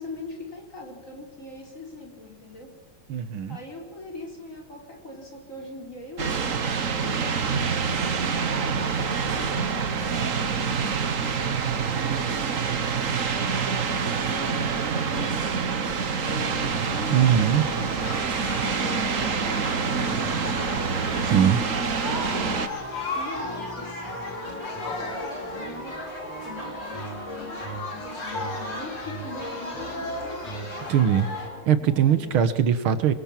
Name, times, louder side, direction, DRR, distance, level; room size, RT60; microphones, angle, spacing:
voice 1, 0.0-2.7 3.5-6.7 7.0-7.4 8.1-18.0 18.6-20.8 21.6-22.7 23.1-30.8 31.8-32.4, left 2 dB, 35° left, 1 dB, 5.1 m, -42 dB
voice 2, 3.1-3.6 17.1-17.6 21.2-21.6 30.9-31.3 31.7-33.1, right 8 dB, 75° right, 12 dB, 2.1 m, -21 dB
sound 1, 6.2-22.7, right 6 dB, 45° right, 1.5 m, -26 dB
sound 2, 16.2-31.6, equal, 15° left, 6.0 m, -37 dB
sound 3, 18.0-31.5, left 3 dB, 90° left, 4.9 m, -36 dB
26.0 x 22.5 x 7.4 m, 1.1 s
omnidirectional pair, 2.3 m